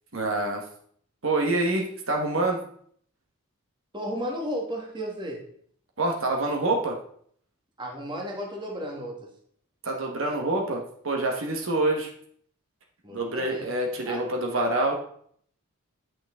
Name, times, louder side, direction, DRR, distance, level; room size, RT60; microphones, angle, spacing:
voice 1, 0.1-0.6 1.2-2.6 6.0-7.0 9.8-12.1 13.1-14.9, right 2 dB, 60° right, 1 dB, 1.3 m, -26 dB
voice 2, 3.9-5.4 7.8-9.3 13.0-13.7 14.0-14.2, equal, 20° right, 0 dB, 1.4 m, -33 dB
9.1 x 6.0 x 3.6 m, 0.62 s
head